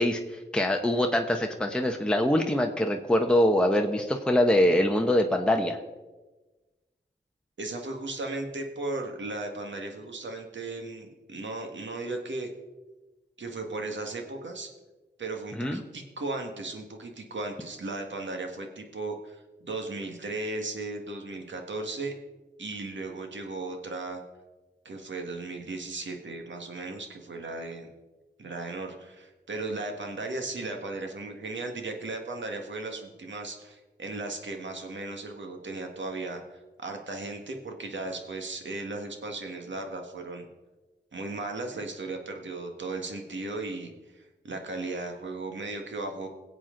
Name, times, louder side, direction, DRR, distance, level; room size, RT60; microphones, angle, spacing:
voice 1, 0.0-5.8 15.6-15.8, left 1 dB, 5° left, 3 dB, 0.9 m, -24 dB
voice 2, 7.6-12.5 13.4-14.7 15.2-22.1 22.6-24.2 24.9-27.9 28.4-40.5 41.1-46.3, right 2 dB, 85° right, 3 dB, 1.7 m, -36 dB
21.5 x 8.0 x 3.8 m, 1.2 s
wide cardioid pair, 80°, 19 cm